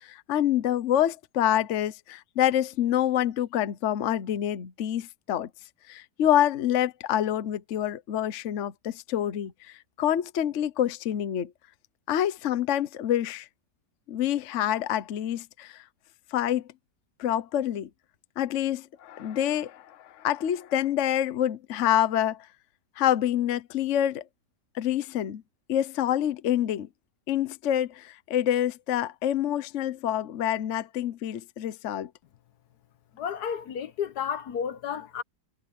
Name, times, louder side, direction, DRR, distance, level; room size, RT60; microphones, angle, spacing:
voice 1, 0.0-5.5 5.9-9.5 10.0-11.5 12.1-13.5 14.1-15.8 16.3-16.6 17.2-17.9 18.4-22.5 23.0-24.2 24.7-25.4 25.7-26.9 27.3-32.1, left 11 dB, 55° left, 1.0 m, -27 dB
voice 2, 33.1-35.2, left 8 dB, 70° left, 1.4 m, -32 dB
omnidirectional pair, 1.8 m